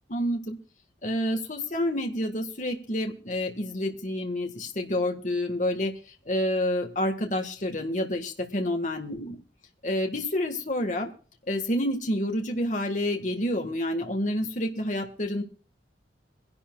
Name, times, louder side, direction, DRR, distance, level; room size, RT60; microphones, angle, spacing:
voice 1, 0.1-0.6 1.0-9.3 9.8-11.1 11.5-15.4, left 1 dB, 40° left, 3 dB, 1.7 m, -28 dB
24.0 x 11.5 x 2.4 m, 0.39 s
head